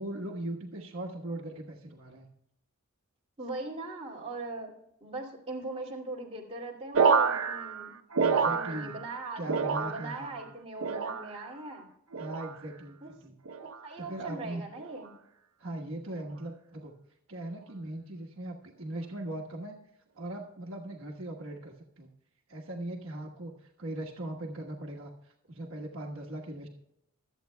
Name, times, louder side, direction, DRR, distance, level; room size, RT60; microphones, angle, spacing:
voice 1, 0.0-2.3 8.2-8.9 9.3-10.4 12.2-13.4 14.0-14.6 15.6-16.9 17.3-19.8 20.1-22.1 22.5-26.7, right 1 dB, 65° right, -1 dB, 1.3 m, -39 dB
voice 2, 3.4-4.7 5.0-7.9 8.3-11.9 13.0-13.1 13.8-15.1, right 2 dB, 25° right, -2 dB, 2.3 m, -40 dB
sound 1, 6.9-9.2 9.4-10.3 10.8-11.5 12.1-12.6 13.5-13.8 14.8-15.1, right 5 dB, 85° right, 0.8 m, -28 dB
24.0 x 8.2 x 2.2 m, 0.81 s
head